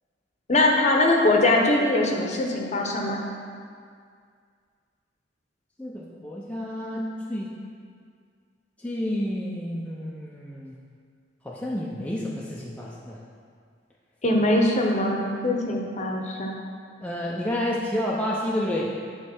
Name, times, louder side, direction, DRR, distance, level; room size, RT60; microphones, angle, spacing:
voice 1, 0.5-3.2 14.2-16.6, left 2 dB, 35° left, 1 dB, 0.8 m, -22 dB
voice 2, 5.8-7.5 8.8-10.7 11.4-13.2 17.0-18.9, left 1 dB, 5° left, -4 dB, 0.6 m, -30 dB
9.6 x 3.2 x 6.0 m, 2.1 s
head